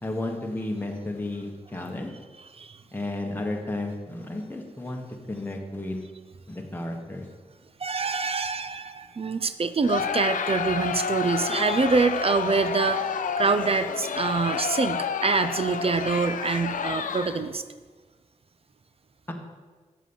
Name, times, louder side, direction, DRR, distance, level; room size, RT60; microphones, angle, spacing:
voice 1, 0.0-2.1 2.9-5.0 5.3-6.0 6.5-7.2 19.3-19.4, left 2 dB, 15° left, 1 dB, 1.4 m, -32 dB
voice 2, 7.8-17.6, right 4 dB, 45° right, 10 dB, 0.6 m, -25 dB
Crowd, 9.8-17.6, left 7 dB, 75° left, 0.5 m, -30 dB
7.3 x 6.9 x 5.5 m, 1.4 s
cardioid pair, 55°, 14 cm